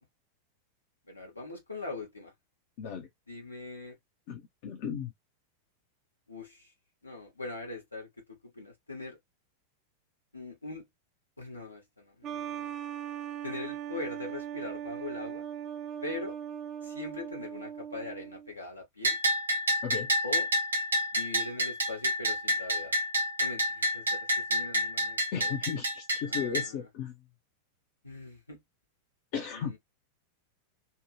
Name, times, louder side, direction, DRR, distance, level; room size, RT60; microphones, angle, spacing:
voice 1, 1.1-2.3 3.3-4.0 6.3-6.7 7.0-9.2 10.3-10.8 11.4-12.7 13.4-15.4 16.0-16.3 16.8-19.2 20.2-20.5 21.1-22.9 23.4-25.6 26.3-26.9 28.0-28.6 29.5-29.8, left 2 dB, 80° left, 1.3 m, -41 dB
voice 2, 2.8-3.1 4.3-5.1 19.8-20.1 25.3-27.1 29.3-29.7, left 7 dB, 50° left, 0.7 m, -35 dB
sound 1, 12.2-18.5, right 9 dB, 30° right, 0.5 m, -39 dB
Bell, 19.0-26.7, equal, 80° right, 0.8 m, -29 dB
2.7 x 2.2 x 3.1 m
figure-of-eight pair, 90°, 0 cm